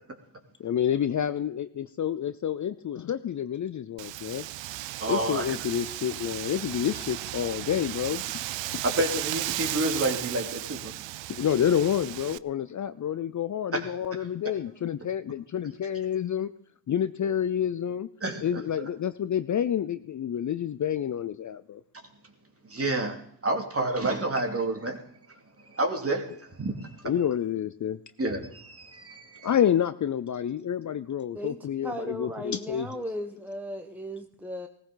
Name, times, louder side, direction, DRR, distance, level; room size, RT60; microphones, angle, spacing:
voice 1, 0.6-4.4 5.1-8.4 8.7-8.8 11.3-16.5 16.9-18.1 18.4-21.8 27.0-28.0 29.4-33.0, left 9 dB, 40° left, 0.6 m, -28 dB
Wind, 4.0-12.4, right 16 dB, 70° right, 0.5 m, -35 dB
voice 2, 5.0-5.5 8.8-10.9 13.7-13.9 14.4-14.5 18.2-18.6 22.7-25.0 25.6-26.9 28.2-29.5, right 2 dB, 30° right, 2.6 m, -29 dB
voice 3, 31.8-34.7, equal, 5° right, 1.1 m, -36 dB
17.0 x 15.0 x 3.9 m
cardioid pair, 75°, 46 cm